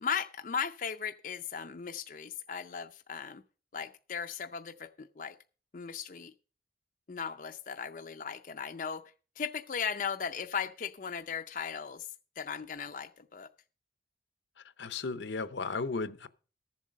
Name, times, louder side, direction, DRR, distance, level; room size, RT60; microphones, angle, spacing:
voice 1, 0.0-3.4 3.7-5.3 5.7-6.3 7.1-9.0 9.4-12.1 12.4-13.5, left 7 dB, 45° left, 0.5 m, -37 dB
voice 2, 14.8-16.3, left 4 dB, 80° left, 0.7 m, -35 dB
14.0 x 7.3 x 5.2 m
head